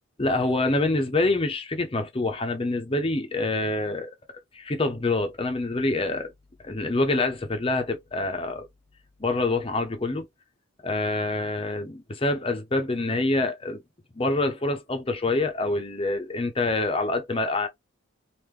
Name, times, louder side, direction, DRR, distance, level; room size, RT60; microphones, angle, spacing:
voice 1, 0.2-4.1 4.5-6.3 6.6-8.7 9.2-10.3 10.8-13.8 14.1-17.7, left 2 dB, 25° left, 0.7 m, -26 dB
3.6 x 2.6 x 3.1 m
head